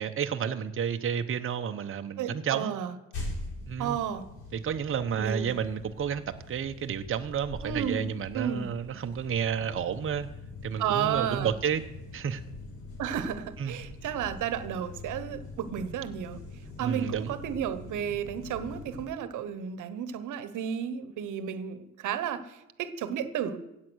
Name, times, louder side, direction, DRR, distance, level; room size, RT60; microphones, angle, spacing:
voice 1, 0.0-2.8 3.7-4.0 4.5-10.3 10.6-11.8 12.1-12.4 13.6-13.7 16.8-17.3, right 7 dB, 45° right, 6 dB, 0.9 m, -31 dB
voice 2, 2.2-2.9 3.8-4.3 5.2-5.5 7.6-8.7 10.8-11.5 13.0-16.4 16.8-23.6, right 8 dB, 80° right, 13 dB, 1.1 m, -32 dB
sound 1, 3.1-19.1, left 2 dB, 70° left, 6.7 m, -43 dB
16.0 x 8.4 x 6.3 m, 0.92 s
cardioid pair, 90°, 30 cm